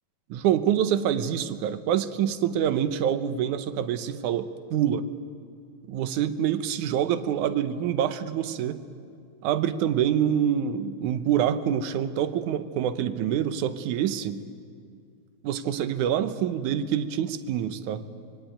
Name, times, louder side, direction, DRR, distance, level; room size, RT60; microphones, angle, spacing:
voice 1, 0.3-5.1 5.9-8.8 9.4-14.4 15.4-18.0, right 9 dB, 70° right, 11 dB, 2.1 m, -26 dB
24.5 x 23.0 x 9.1 m, 2.3 s
omnidirectional pair, 4.2 m